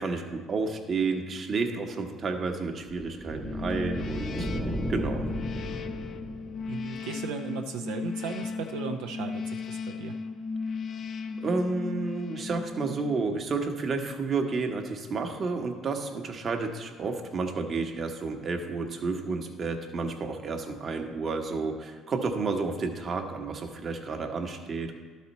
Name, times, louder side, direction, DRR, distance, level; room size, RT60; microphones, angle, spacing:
voice 1, 0.0-4.5 4.9-5.2 11.4-24.9, right 4 dB, 45° right, 4 dB, 1.0 m, -31 dB
sound 1, 1.4-7.0, equal, 10° right, 0.6 m, -35 dB
sound 2, 3.4-13.3, left 5 dB, 55° left, 0.5 m, -36 dB
voice 2, 6.7-10.2, right 5 dB, 85° right, 4 dB, 0.4 m, -36 dB
11.5 x 4.2 x 4.1 m, 1.5 s
supercardioid pair, 80°, 0 cm